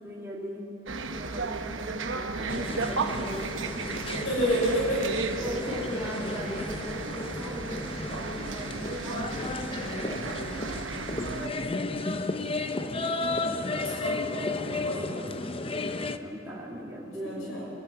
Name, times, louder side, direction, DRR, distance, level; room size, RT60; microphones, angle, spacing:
voice 1, 0.0-0.7 1.1-3.9 4.4-4.7 5.4-13.6 16.0-17.7, equal, 10° right, -5 dB, 2.2 m, -40 dB
sound 1, 0.9-11.5, right 4 dB, 65° right, 1.0 m, -34 dB
sound 2, 2.5-16.2, left 2 dB, 25° left, 0.7 m, -33 dB
voice 2, 4.0-5.0 13.8-15.4 17.2-17.7, equal, 75° left, -4 dB, 6.7 m, -30 dB
24.5 x 23.5 x 5.8 m, 2.9 s
head